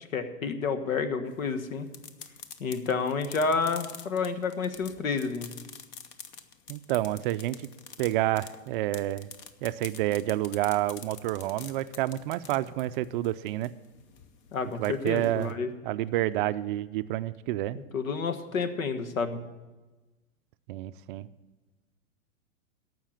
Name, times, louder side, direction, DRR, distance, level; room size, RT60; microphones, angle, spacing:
voice 1, 0.1-1.9 2.6-5.5 14.5-15.7 17.9-19.4, left 4 dB, 85° left, 9 dB, 1.4 m, -30 dB
sound 1, 1.3-15.5, left 7 dB, 30° left, 0.7 m, -47 dB
voice 2, 6.7-7.7 8.0-9.3 9.6-13.7 14.8-15.6 15.8-17.8 20.7-21.3, right 15 dB, 40° right, 14 dB, 0.4 m, -29 dB
14.5 x 5.9 x 8.8 m, 1.2 s
hypercardioid pair, 125°, 40 cm